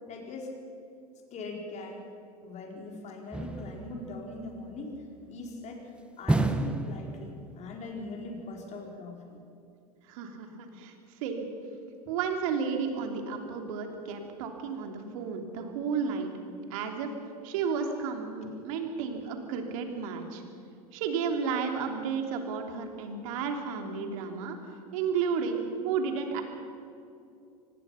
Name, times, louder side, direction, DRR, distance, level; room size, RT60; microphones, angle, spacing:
voice 1, 0.1-0.6 1.3-2.0 2.4-5.0 5.3-5.9 6.2-9.4, left 2 dB, 35° left, 1 dB, 4.6 m, -41 dB
plastic garbage can kicks, 3.3-5.0 6.3-7.8 8.1-8.2, right 2 dB, 5° right, 1.2 m, -31 dB
voice 2, 10.1-10.9 11.2-11.5 12.1-16.3 16.7-17.1 17.4-20.4 20.9-24.6 24.9-26.4, right 6 dB, 60° right, 4 dB, 3.2 m, -32 dB
24.5 x 19.5 x 5.8 m, 2.6 s
figure-of-eight pair, 85°, 20 cm